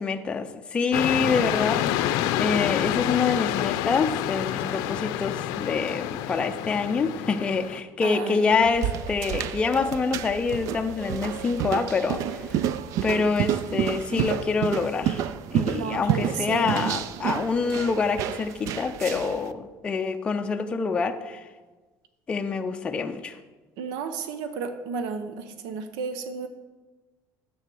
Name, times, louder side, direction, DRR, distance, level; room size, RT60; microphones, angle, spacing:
voice 1, 0.0-12.6 13.0-15.2 15.5-21.4 22.3-23.4, left 4 dB, 15° left, 0.4 m, -26 dB
sound 1, 0.9-7.8, left 12 dB, 90° left, 0.6 m, -28 dB
sound 2, 8.0-13.3, equal, 30° right, 3.2 m, -44 dB
voice 2, 8.0-8.7 15.7-16.7 23.8-26.5, right 5 dB, 90° right, 0.9 m, -32 dB
sound 3, 8.5-19.4, right 10 dB, 55° right, 0.4 m, -30 dB
9.6 x 7.6 x 6.2 m
cardioid pair, 175°, 7 cm